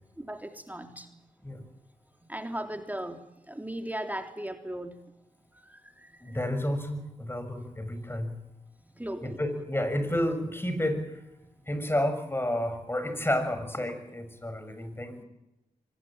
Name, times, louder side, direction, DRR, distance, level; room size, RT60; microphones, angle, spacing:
voice 1, 0.2-1.1 2.3-5.0 5.5-6.4 8.9-9.4, right 1 dB, 10° right, 5 dB, 3.4 m, -37 dB
voice 2, 6.2-8.4 9.2-11.2 11.7-15.2, left 1 dB, 15° left, 9 dB, 6.6 m, -30 dB
24.5 x 19.5 x 9.0 m, 0.91 s
cardioid pair, 55°, 15 cm